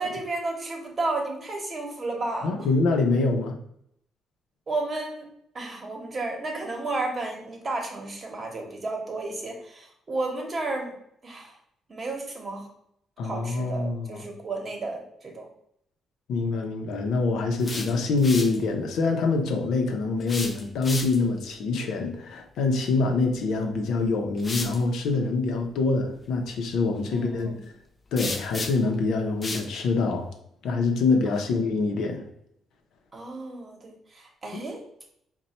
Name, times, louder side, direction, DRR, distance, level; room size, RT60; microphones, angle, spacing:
voice 1, 0.0-2.7 4.7-5.3 5.5-11.0 11.2-11.5 11.9-12.7 13.2-15.5 17.6-18.1 27.1-27.6 31.3-31.4 33.1-34.8, right 2 dB, 35° right, 2 dB, 1.0 m, -32 dB
voice 2, 2.4-3.6 13.2-14.2 16.3-27.5 28.1-30.3 30.6-32.3 34.5-34.6, left 3 dB, 80° left, 3 dB, 0.6 m, -25 dB
sound 1, 17.4-18.6 20.2-21.4 23.4-23.6 24.4-24.8 28.2-28.9 29.4-29.7, left 3 dB, 30° left, 0.4 m, -34 dB
4.1 x 2.2 x 4.2 m, 0.72 s
cardioid pair, 115°, 0 cm